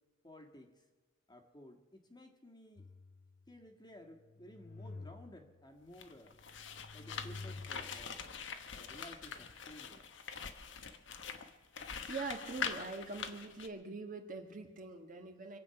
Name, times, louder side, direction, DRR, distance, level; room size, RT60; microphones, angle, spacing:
voice 1, 0.2-0.8 1.3-2.9 3.5-6.4 6.9-8.2 8.7-10.0, left 1 dB, 20° left, 3 dB, 1.6 m, -55 dB
sound 1, 2.8-3.6 4.1-5.7 6.3-8.2, left 3 dB, 45° left, 0.6 m, -51 dB
sound 2, 5.9-13.7, left 6 dB, 70° left, 1.1 m, -44 dB
voice 2, 12.1-15.6, right 3 dB, 45° right, 4 dB, 1.5 m, -43 dB
25.0 x 8.5 x 5.8 m, 1.3 s
head